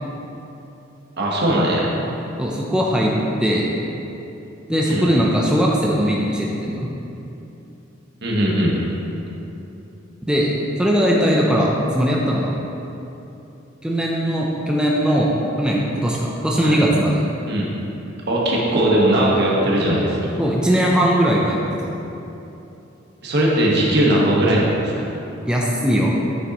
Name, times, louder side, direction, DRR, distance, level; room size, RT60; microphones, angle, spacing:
voice 1, 1.2-1.9 4.8-5.1 8.2-8.8 16.6-16.8 17.5-17.7 18.3-20.2 23.2-24.9, right 1 dB, 60° right, -4 dB, 1.5 m, -19 dB
voice 2, 2.4-3.1 3.4-3.7 4.7-6.9 10.2-10.5 10.8-12.5 13.8-15.3 15.6-17.2 20.4-21.9 25.4-26.1, equal, 5° right, -4 dB, 0.6 m, -19 dB
9.3 x 6.7 x 3.0 m, 2.9 s
head